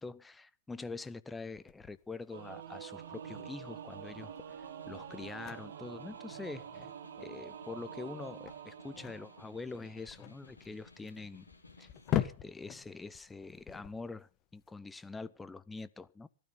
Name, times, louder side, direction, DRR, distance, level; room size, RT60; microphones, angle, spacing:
voice 1, 0.0-4.3 4.9-6.9 7.2-11.5 11.8-11.9 12.1-16.3, left 3 dB, 10° left, 0.9 m, -45 dB
sound 1, 1.5-14.7, left 12 dB, 35° left, 1.5 m, -42 dB
Singing / Musical instrument, 2.3-10.1, right 9 dB, 60° right, 1.1 m, -47 dB
Snare drum, 2.6-12.3, left 2 dB, 85° left, 4.2 m, -59 dB
18.0 x 12.5 x 5.5 m
figure-of-eight pair, 95°, 0 cm